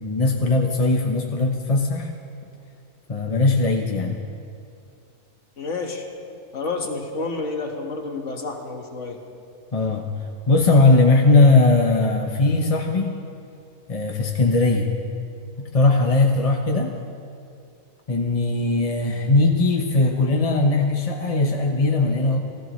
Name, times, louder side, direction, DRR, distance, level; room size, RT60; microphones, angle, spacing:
voice 1, 0.0-2.1 3.1-4.2 9.7-10.1 10.5-13.1 13.9-14.9 15.6-16.9 18.1-22.4, left 2 dB, 30° left, 2 dB, 0.8 m, -19 dB
voice 2, 5.6-6.1 6.5-9.2 10.6-10.7, left 3 dB, 60° left, 2 dB, 1.9 m, -29 dB
28.5 x 15.5 x 3.1 m, 2.5 s
omnidirectional pair, 1.4 m